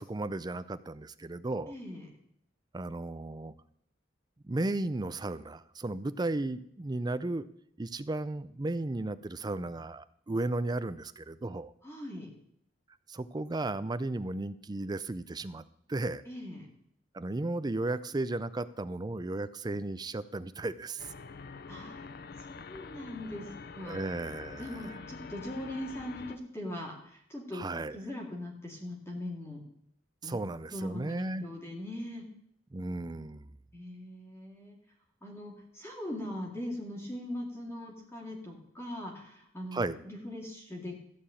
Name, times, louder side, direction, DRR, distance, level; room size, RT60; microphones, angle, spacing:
voice 1, 0.0-1.7 2.7-3.5 4.4-7.5 7.8-11.7 13.1-15.6 15.9-16.2 17.1-21.1 23.8-24.8 27.5-28.0 30.2-31.4 32.7-33.5 39.7-40.0, right 2 dB, 20° right, 14 dB, 0.5 m, -34 dB
voice 2, 1.7-2.1 11.8-12.3 16.3-16.7 21.7-22.0 22.5-24.0 24.6-27.7 27.9-29.6 30.2-32.3 33.7-34.8 35.2-41.0, left 1 dB, 15° left, -1 dB, 2.2 m, -41 dB
sound 1, 21.0-26.4, left 5 dB, 55° left, 0.6 m, -46 dB
14.5 x 4.9 x 8.6 m, 0.70 s
head